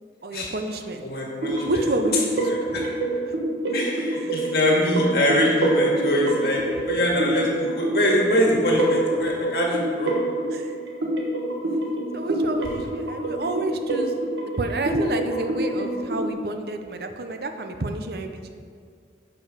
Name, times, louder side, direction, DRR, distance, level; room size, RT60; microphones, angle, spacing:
voice 1, 0.2-1.0 1.6-2.4 2.7-2.8 3.3-3.4 10.5-10.7 12.1-14.1 14.6-18.5, right 2 dB, 60° right, 6 dB, 0.6 m, -29 dB
voice 2, 1.0-1.8 2.5-2.8 3.7-10.1, left 1 dB, 60° left, -2 dB, 1.9 m, -23 dB
sound 1, 1.4-16.3, right 1 dB, 80° right, 1.3 m, -26 dB
11.0 x 5.2 x 5.0 m, 2.1 s
head